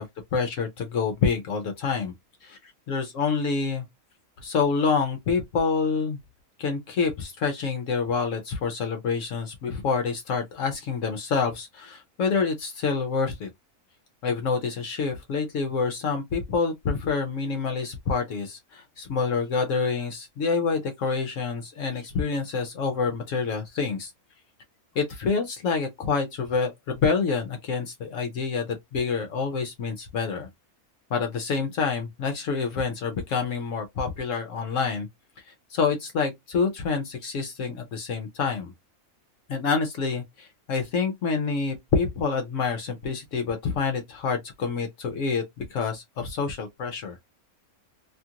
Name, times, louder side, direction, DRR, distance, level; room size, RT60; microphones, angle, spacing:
voice 1, 0.3-2.1 2.4-2.6 2.9-3.8 4.4-6.2 6.6-13.5 14.2-24.1 24.9-30.5 31.1-35.1 35.5-38.7 39.5-47.2, left 5 dB, 65° left, 1.0 m, -27 dB
2.8 x 2.4 x 2.7 m
omnidirectional pair, 1.5 m